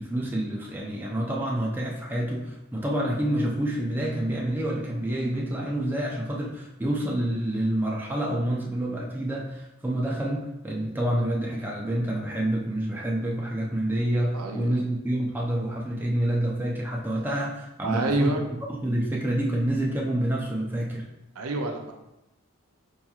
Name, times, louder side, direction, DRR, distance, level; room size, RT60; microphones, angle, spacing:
voice 1, 0.0-18.3 18.7-21.0, right 1 dB, 10° right, -3 dB, 0.4 m, -28 dB
voice 2, 14.3-14.9 17.8-18.5 21.4-21.9, right 2 dB, 85° right, 3 dB, 0.5 m, -28 dB
4.6 x 2.9 x 2.3 m, 0.90 s
head